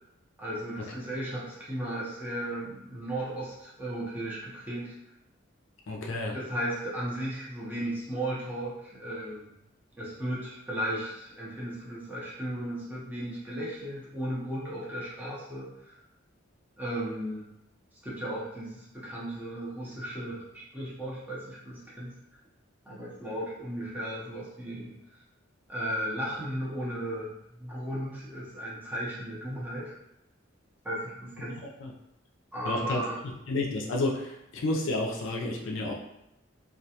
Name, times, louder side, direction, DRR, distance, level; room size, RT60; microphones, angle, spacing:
voice 1, 0.4-4.9 6.3-9.5 10.0-16.0 16.8-17.5 18.0-22.1 22.9-24.9 25.7-29.9 30.8-31.6 32.5-33.2, right 1 dB, 10° right, -7 dB, 0.6 m, -35 dB
voice 2, 5.9-6.3 31.8-31.9 32.7-33.0 33.5-35.9, left 2 dB, 70° left, -1 dB, 0.4 m, -30 dB
2.3 x 2.2 x 2.8 m, 0.83 s
head